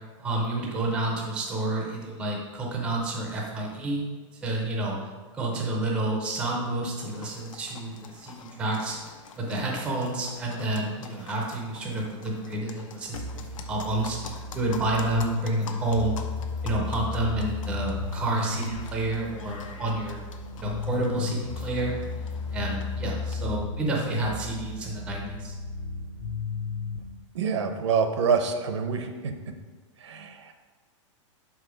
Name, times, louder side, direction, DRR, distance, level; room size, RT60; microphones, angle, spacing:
voice 1, 0.2-4.0 4.3-5.0 5.3-16.1 16.6-20.2 20.5-22.0 22.5-25.6, right 2 dB, 5° right, -1 dB, 0.5 m, -29 dB
sound 1, 7.0-23.6, left 6 dB, 85° left, 0.8 m, -46 dB
sound 2, 13.1-27.0, left 4 dB, 50° left, 0.8 m, -34 dB
voice 2, 27.3-29.3 30.0-30.5, right 6 dB, 65° right, 7 dB, 0.7 m, -26 dB
5.6 x 4.9 x 4.9 m, 1.4 s
supercardioid pair, 175°, 16 cm